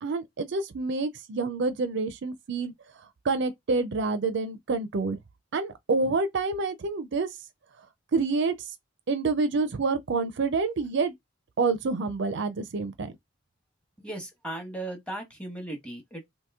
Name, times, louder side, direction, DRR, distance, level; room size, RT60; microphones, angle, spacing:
voice 1, 0.0-2.7 3.2-5.2 5.5-7.3 8.1-8.6 9.1-11.1 11.6-13.1, right 3 dB, 60° right, 0.5 m, -27 dB
voice 2, 14.0-16.3, right 1 dB, 5° left, 1.0 m, -37 dB
2.9 x 2.6 x 3.5 m
head